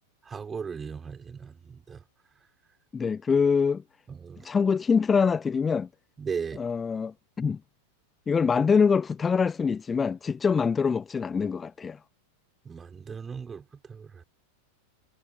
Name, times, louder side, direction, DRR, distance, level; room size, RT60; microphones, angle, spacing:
voice 1, 0.3-2.0 4.1-4.4 6.2-6.6 12.7-14.1, right 6 dB, 20° right, 4.0 m, -37 dB
voice 2, 2.9-3.8 4.4-5.9 6.5-7.6 8.3-12.0, left 5 dB, 15° left, 0.9 m, -24 dB
figure-of-eight pair, 90°, 0 cm